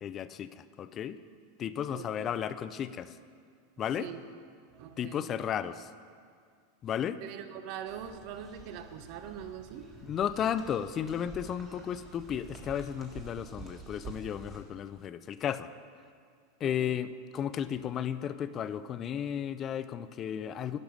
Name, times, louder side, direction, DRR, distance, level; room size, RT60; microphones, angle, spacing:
voice 1, 0.0-1.2 1.6-3.2 3.8-4.1 5.0-5.9 6.8-7.2 10.0-15.7 16.6-20.8, left 9 dB, 35° left, 14 dB, 0.4 m, -34 dB
voice 2, 1.9-2.3 3.9-4.2 4.7-5.3 7.2-9.9 16.6-16.9, right 9 dB, 55° right, 9 dB, 0.6 m, -43 dB
sound 1, 7.9-14.6, right 4 dB, 30° right, 1.7 m, -49 dB
10.5 x 5.5 x 6.2 m, 2.2 s
supercardioid pair, 120°, 0 cm